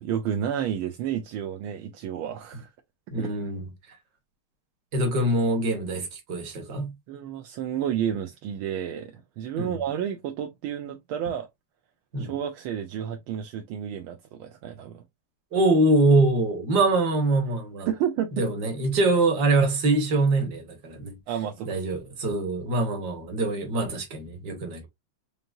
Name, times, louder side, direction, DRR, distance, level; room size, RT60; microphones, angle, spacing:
voice 1, 0.0-2.7 3.2-3.3 7.1-11.5 12.2-15.0 17.8-18.5 21.3-21.8, right 9 dB, 80° right, 1.4 m, -31 dB
voice 2, 3.1-3.6 4.9-6.9 9.6-9.7 12.1-12.3 15.5-17.9 18.4-21.1 21.7-24.9, right 2 dB, 55° right, 1.7 m, -24 dB
5.2 x 2.8 x 2.5 m
omnidirectional pair, 2.4 m